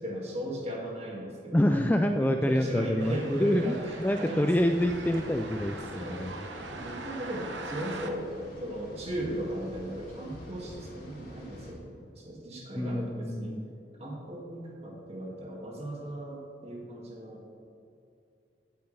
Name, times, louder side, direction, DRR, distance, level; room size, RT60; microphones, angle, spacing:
voice 1, 0.0-1.8 2.2-4.5 5.9-6.3 6.6-8.3 8.6-13.6 14.0-17.4, right 1 dB, 35° right, -2 dB, 2.2 m, -37 dB
voice 2, 1.5-6.4 12.8-13.7, left 1 dB, 10° left, 6 dB, 0.3 m, -27 dB
sound 1, 3.0-8.1, right 2 dB, 85° right, 1.0 m, -42 dB
sound 2, 4.6-11.7, equal, 55° left, 2.8 m, -46 dB
16.0 x 8.8 x 3.4 m, 2.6 s
head